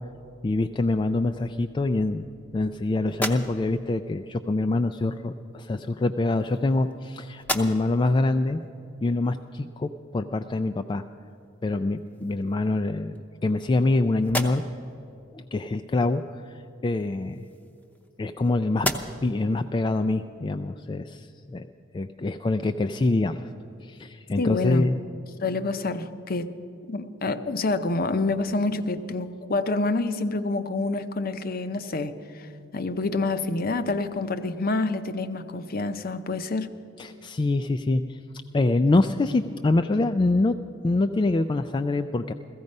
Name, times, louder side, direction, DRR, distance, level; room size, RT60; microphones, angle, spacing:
voice 1, 0.4-2.3 2.5-8.6 9.0-11.0 11.6-14.6 15.3-16.6 16.8-17.4 18.2-18.9 19.2-21.7 21.9-23.5 23.8-25.0 37.0-38.2 38.5-40.6 40.8-42.3, left 2 dB, 25° left, 7 dB, 0.3 m, -25 dB
sound 1, 3.1-3.9 5.0-5.2 6.1-7.0 7.4-8.1 8.6-8.7 11.3-11.5 11.9-12.6 13.2-13.9 14.2-14.9 16.9-18.4 18.7-19.4, equal, 10° left, 0.7 m, -34 dB
voice 2, 24.4-24.9 25.4-26.5 26.9-36.7, left 3 dB, 50° left, 10 dB, 0.7 m, -27 dB
16.0 x 15.0 x 5.4 m, 2.6 s
head